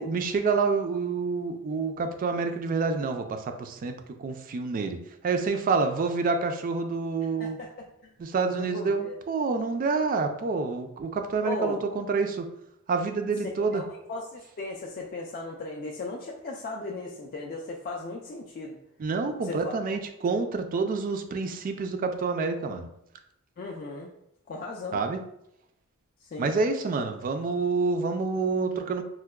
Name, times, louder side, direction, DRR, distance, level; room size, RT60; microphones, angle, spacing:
voice 1, 0.0-5.0 5.2-7.6 8.2-12.5 12.9-13.8 19.0-22.9 24.9-25.2 26.4-29.0, right 4 dB, 40° right, 6 dB, 0.3 m, -28 dB
voice 2, 8.5-9.2 11.4-11.8 13.6-18.8 19.4-20.0 23.6-24.1 24.5-25.0 26.2-26.5, left 2 dB, 40° left, -2 dB, 0.3 m, -37 dB
4.4 x 2.1 x 2.2 m, 0.78 s
head